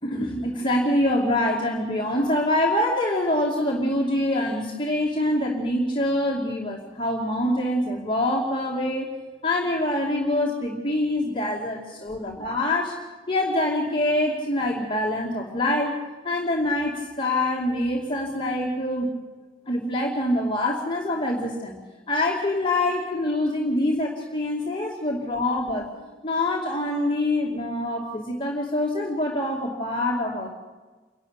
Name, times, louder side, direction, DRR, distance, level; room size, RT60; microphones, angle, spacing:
voice 1, 0.0-9.1 9.4-12.9 13.3-16.0 16.2-19.1 19.7-21.8 22.1-30.5, left 1 dB, 25° left, -2 dB, 2.5 m, -25 dB
28.0 x 12.0 x 8.3 m, 1.3 s
head